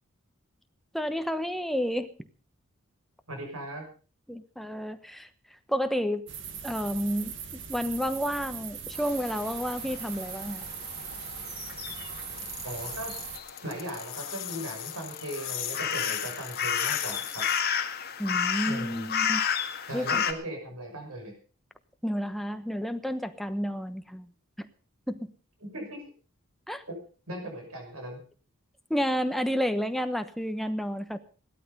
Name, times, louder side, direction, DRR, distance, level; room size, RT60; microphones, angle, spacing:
voice 1, 0.9-2.1 4.3-5.3 5.7-6.2 6.6-7.3 7.7-10.6 18.2-19.4 19.9-20.2 22.0-24.3 24.6-24.7 25.1-25.2 26.7-26.8 28.9-31.2, equal, ahead, 8 dB, 1.0 m, -30 dB
voice 2, 3.3-3.8 12.6-13.1 13.6-17.5 18.7-19.1 19.9-21.3 25.6-26.0 26.9-27.0 27.3-28.2, right 1 dB, 85° right, 3 dB, 6.1 m, -38 dB
sound 1, 6.3-13.4, right 7 dB, 55° right, 1.8 m, -40 dB
sound 2, 9.0-20.3, left 7 dB, 45° left, 1.8 m, -33 dB
sound 3, 12.4-17.6, left 12 dB, 65° left, 3.0 m, -37 dB
17.0 x 12.5 x 5.5 m, 0.39 s
head